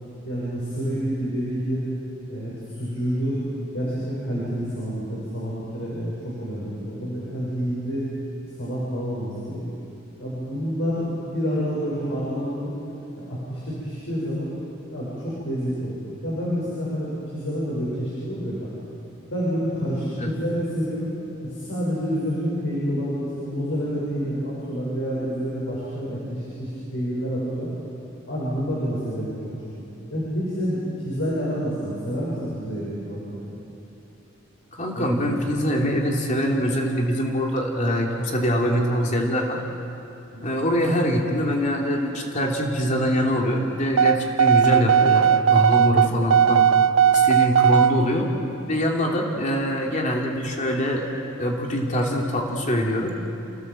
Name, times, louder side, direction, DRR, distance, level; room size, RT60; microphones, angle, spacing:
voice 1, 0.2-1.8 2.3-8.0 8.6-9.6 10.2-12.7 13.1-14.5 14.9-18.7 19.3-21.1 21.4-27.7 28.3-29.8 30.1-33.4 34.9-35.3 40.3-40.5 45.9-46.0, equal, 70° left, -8 dB, 6.7 m, -28 dB
voice 2, 34.8-39.6 40.4-46.6 47.1-48.3 48.7-51.0 51.4-53.1, equal, 40° left, 0 dB, 3.0 m, -23 dB
sound 1, 44.0-47.9, right 8 dB, 75° right, 0.5 m, -17 dB
29.0 x 16.5 x 7.6 m, 2.9 s
head